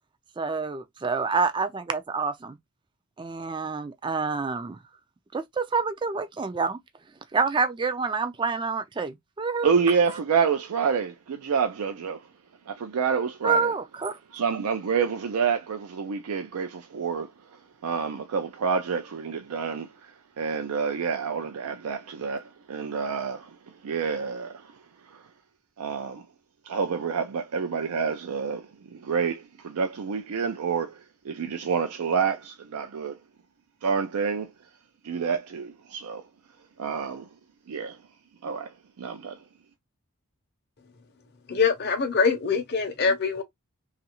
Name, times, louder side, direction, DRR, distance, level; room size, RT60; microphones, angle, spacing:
voice 1, 0.4-2.6 3.2-4.8 5.3-6.8 7.3-9.7 13.4-14.2, right 4 dB, 20° right, 0.3 m, -27 dB
voice 2, 9.6-12.3 12.7-13.7 14.3-25.3 25.8-26.3 26.6-33.2 33.8-34.5 35.0-36.3 36.8-37.3 37.7-38.0 38.4-39.4, right 6 dB, 85° right, 0.4 m, -28 dB
voice 3, 41.5-43.4, left 5 dB, 45° left, 0.6 m, -24 dB
3.0 x 2.4 x 2.9 m
head